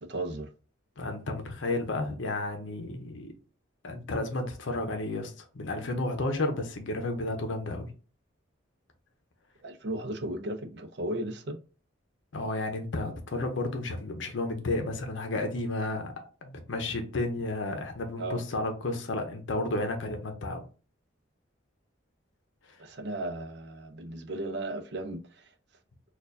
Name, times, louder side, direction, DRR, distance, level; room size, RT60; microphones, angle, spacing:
voice 1, 0.1-0.5 9.6-11.6 18.2-18.4 22.8-25.5, right 1 dB, 60° right, 0.5 m, -35 dB
voice 2, 1.0-3.3 3.8-7.9 12.3-16.1 16.4-20.6, left 2 dB, 75° left, 0.7 m, -32 dB
4.3 x 2.4 x 2.6 m
head